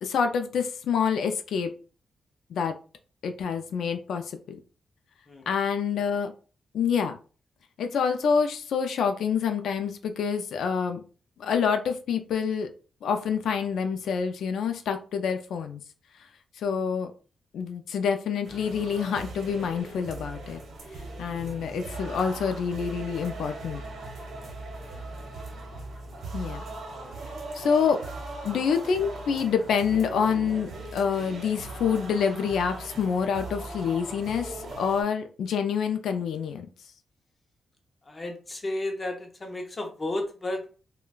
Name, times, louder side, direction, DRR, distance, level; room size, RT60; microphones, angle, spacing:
voice 1, 0.0-1.7 2.5-2.8 3.2-4.2 5.5-6.3 6.7-7.2 7.8-11.0 11.4-12.7 13.0-15.8 16.6-17.1 17.5-20.6 21.2-23.8 26.3-26.6 27.5-28.0 28.4-36.7, left 6 dB, 90° left, 6 dB, 0.3 m, -27 dB
sound 1, 18.4-35.0, right 2 dB, 70° right, 0.9 m, -39 dB
voice 2, 38.1-40.7, left 1 dB, 25° left, 3 dB, 0.6 m, -33 dB
3.7 x 2.2 x 2.3 m, 0.37 s
wide cardioid pair, 175°, 0 cm